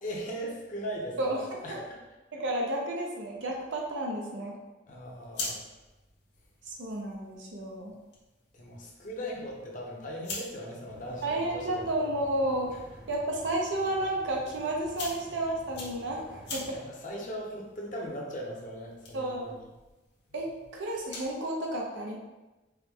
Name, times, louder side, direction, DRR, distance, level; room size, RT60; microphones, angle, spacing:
voice 1, 0.0-2.0 4.9-5.6 8.5-11.9 12.7-12.8 16.7-19.7, equal, 45° left, -2 dB, 0.8 m, -39 dB
voice 2, 1.2-1.8 2.3-4.5 6.6-7.9 11.2-12.7 13.1-16.6 19.1-19.5 20.3-20.5 20.7-22.2, right 1 dB, 75° right, -1 dB, 0.6 m, -32 dB
sound 1, 5.0-21.4, left 3 dB, 60° left, 1.1 m, -46 dB
sound 2, 10.9-16.8, right 1 dB, 30° right, 0.6 m, -50 dB
4.7 x 2.2 x 3.5 m, 1.1 s
head